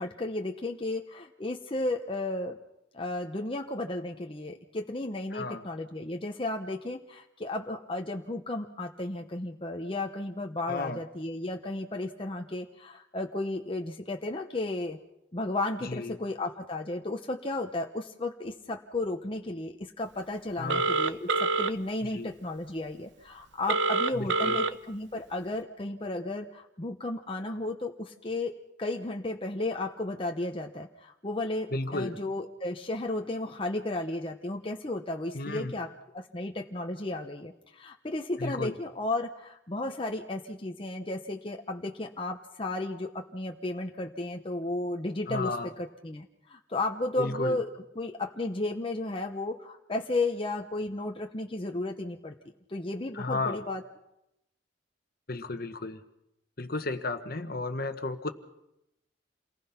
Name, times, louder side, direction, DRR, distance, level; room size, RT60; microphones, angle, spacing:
voice 1, 0.0-2.6 2.9-15.0 15.3-47.7 48.0-52.3 52.7-53.8, left 2 dB, 30° left, 3 dB, 0.9 m, -34 dB
voice 2, 5.3-5.6 10.7-11.0 15.8-16.2 20.6-20.9 22.1-22.3 24.1-24.6 31.7-32.2 35.3-35.7 38.4-38.8 45.3-45.7 47.2-47.6 53.1-53.6 55.3-56.0 56.6-58.3, left 2 dB, 50° left, 9 dB, 1.3 m, -33 dB
Telephone, 20.7-21.7 23.7-24.7, right 4 dB, 70° right, 0.9 m, -26 dB
28.0 x 19.0 x 5.8 m, 0.86 s
head